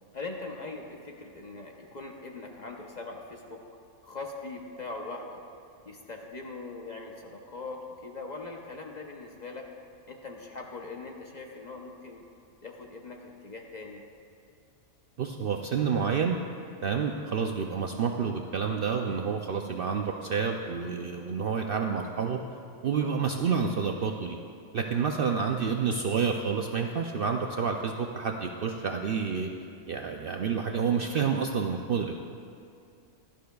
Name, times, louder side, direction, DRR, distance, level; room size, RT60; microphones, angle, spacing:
voice 1, 0.1-3.6 4.0-5.4 5.8-9.7 10.1-12.2 12.6-14.0, left 3 dB, 40° left, 1 dB, 0.7 m, -41 dB
voice 2, 15.2-16.4 16.8-22.4 22.8-24.4 24.7-29.5 29.9-32.2, right 6 dB, 65° right, 3 dB, 0.5 m, -29 dB
16.5 x 12.0 x 2.3 m, 2.4 s
omnidirectional pair, 1.4 m